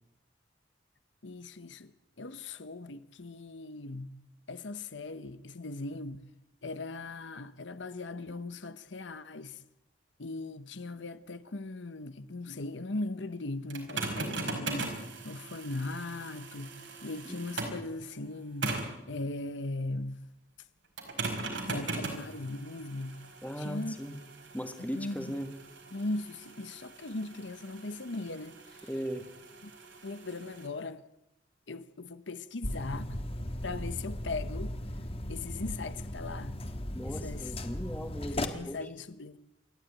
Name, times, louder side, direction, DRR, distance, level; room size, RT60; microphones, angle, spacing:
voice 1, 1.2-1.9 2.2-4.2 4.5-6.2 6.6-9.6 10.2-15.0 15.2-18.8 19.1-20.2 21.6-23.2 23.6-24.0 24.8-25.4 25.9-28.9 29.6-29.7 30.0-31.0 31.7-33.2 33.6-34.7 35.3-36.6 37.0-37.5 38.4-39.4, left 2 dB, 75° left, 1.0 m, -39 dB
sound 1, 13.7-17.9 18.6-19.0 21.0-30.7, right 3 dB, 80° right, 4.9 m, -40 dB
voice 2, 23.4-24.2 24.5-25.5 28.8-29.3 36.9-38.8, equal, 10° left, 1.8 m, -38 dB
sound 2, 32.6-38.4, left 1 dB, 30° left, 1.6 m, -37 dB
28.0 x 12.0 x 9.0 m
head